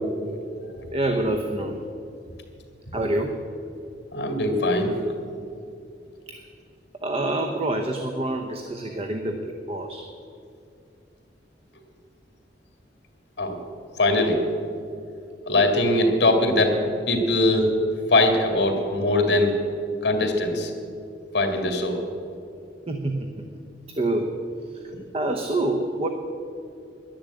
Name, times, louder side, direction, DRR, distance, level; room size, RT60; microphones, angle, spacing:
voice 1, 0.9-1.8 2.9-3.4 6.3-6.4 7.0-10.1 22.9-23.3 24.0-24.3 25.1-26.1, right 2 dB, 35° right, 5 dB, 0.8 m, -26 dB
voice 2, 4.1-4.9 13.4-13.6 14.0-14.4 15.5-16.8 17.1-17.7 18.1-19.5 20.0-20.7 21.3-22.0, left 2 dB, 65° left, 4 dB, 2.2 m, -21 dB
11.0 x 10.5 x 8.3 m, 2.5 s
head